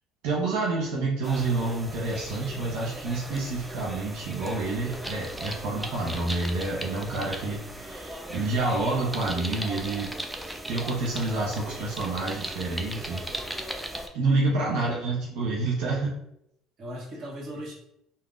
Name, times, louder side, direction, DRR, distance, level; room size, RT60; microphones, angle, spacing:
voice 1, 0.2-10.1 10.7-13.3 13.8-13.9 14.1-16.1, right 3 dB, 75° right, -4 dB, 0.6 m, -28 dB
sound 1, 1.2-14.1, right 1 dB, 5° right, 0.3 m, -37 dB
voice 2, 14.6-15.1 16.8-17.7, equal, 45° right, -3 dB, 1.0 m, -38 dB
3.4 x 2.1 x 2.4 m, 0.77 s
supercardioid pair, 100°, 0 cm